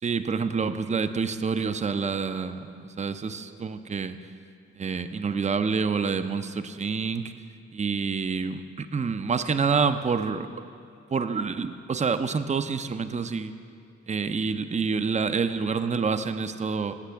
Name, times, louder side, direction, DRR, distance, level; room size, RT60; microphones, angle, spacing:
voice 1, 0.0-4.2 4.8-7.3 7.7-10.5 11.1-13.5 14.1-16.9, right 5 dB, 25° right, 10 dB, 0.5 m, -27 dB
14.5 x 7.4 x 3.4 m, 2.5 s
supercardioid pair, 40°, 29 cm